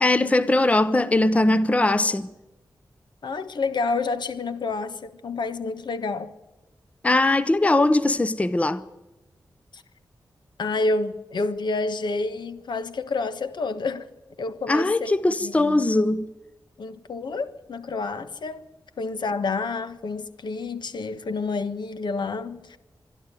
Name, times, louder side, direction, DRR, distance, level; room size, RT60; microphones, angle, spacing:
voice 1, 0.0-2.3 7.0-8.8 14.7-16.3, left 2 dB, 20° left, 0.7 m, -20 dB
voice 2, 3.2-6.3 9.7-9.8 10.6-14.1 14.4-15.9 16.8-18.7 19.0-22.8, left 3 dB, 75° left, 1.4 m, -29 dB
25.5 x 11.5 x 9.1 m
wide cardioid pair, 150°, 8 cm